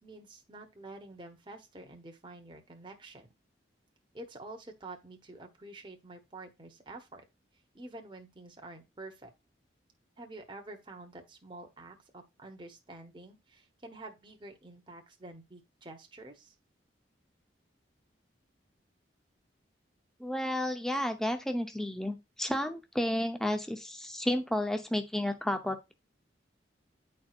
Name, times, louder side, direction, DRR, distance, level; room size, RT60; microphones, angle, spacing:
voice 1, 0.0-3.3 4.1-7.2 7.7-9.3 10.2-16.5, right 2 dB, 25° right, 1.0 m, -48 dB
voice 2, 20.2-25.9, left 1 dB, 5° left, 0.6 m, -32 dB
9.8 x 4.4 x 2.4 m
head